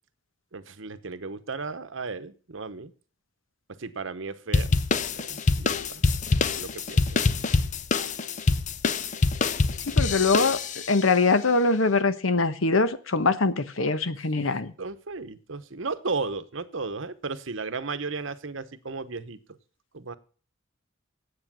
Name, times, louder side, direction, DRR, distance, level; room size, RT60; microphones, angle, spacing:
voice 1, 0.5-2.9 3.8-4.7 5.3-6.0 6.6-7.0 9.9-10.0 14.8-19.4 19.9-20.2, right 4 dB, 70° right, 12 dB, 1.0 m, -34 dB
sound 1, 4.5-11.0, left 3 dB, 40° left, 0.6 m, -25 dB
voice 2, 9.9-10.6 10.9-14.7, left 3 dB, 90° left, 13 dB, 1.1 m, -23 dB
9.7 x 8.2 x 6.1 m, 0.39 s
head